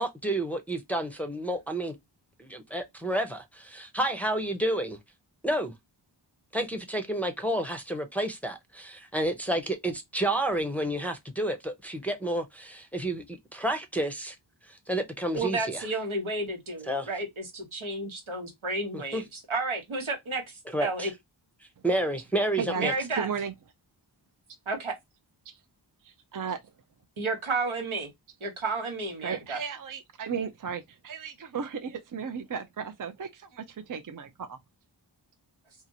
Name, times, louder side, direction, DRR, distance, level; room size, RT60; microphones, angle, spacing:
voice 1, 0.0-1.9 2.4-5.0 5.4-5.7 6.5-14.4 14.7-15.9 16.9-17.1 19.1-19.2 20.7-21.1 21.8-22.9, right 1 dB, 5° left, 0.6 m, -30 dB
voice 2, 15.3-21.1 22.8-23.3 24.7-24.9 27.2-28.1 28.4-29.6, right 3 dB, 85° right, 1.2 m, -32 dB
voice 3, 22.6-22.9 23.2-23.5 25.5-25.6 26.0-26.6 29.2-34.6, right 6 dB, 45° right, 0.5 m, -35 dB
2.8 x 2.5 x 2.6 m
wide cardioid pair, 55°, 47 cm